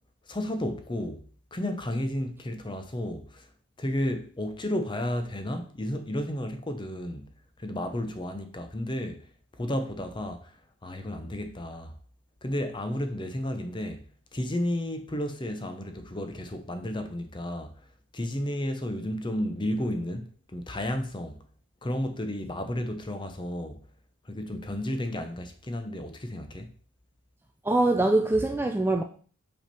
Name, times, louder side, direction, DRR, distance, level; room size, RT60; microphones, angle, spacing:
voice 1, 0.3-1.2 1.5-3.5 3.8-7.3 7.6-9.3 9.6-12.0 12.4-14.0 14.3-17.9 18.1-21.4 21.8-23.8 24.2-26.7, left 1 dB, 20° left, 0.7 m, -32 dB
voice 2, 27.6-29.0, right 2 dB, 10° right, 0.3 m, -23 dB
5.5 x 5.3 x 4.3 m
head